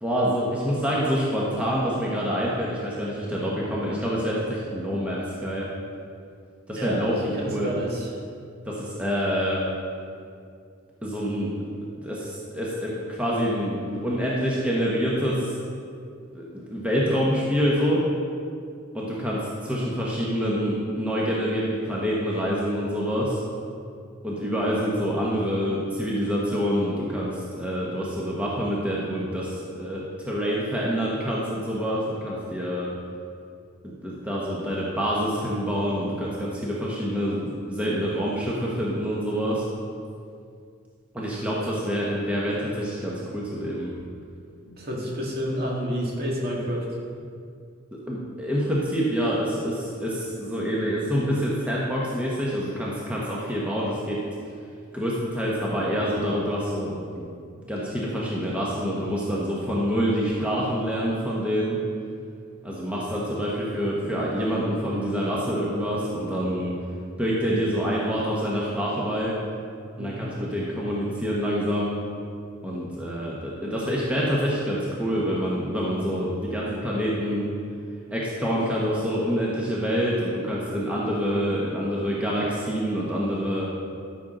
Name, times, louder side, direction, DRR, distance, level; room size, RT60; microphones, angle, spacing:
voice 1, 0.0-5.7 6.7-7.7 8.7-9.6 11.0-11.5 12.0-15.5 16.3-16.4 16.7-18.0 18.9-23.4 24.2-32.9 33.8-39.6 41.1-43.9 48.1-54.2 54.9-57.2 57.7-61.8 62.6-66.7 67.2-69.3 70.0-72.0 72.6-77.5 78.1-83.7, equal, 5° right, -5 dB, 1.1 m, -26 dB
voice 2, 6.7-8.2 41.7-41.8 44.6-46.8 70.0-70.3, equal, 50° right, -3 dB, 2.1 m, -30 dB
13.0 x 6.3 x 3.9 m, 2.3 s
head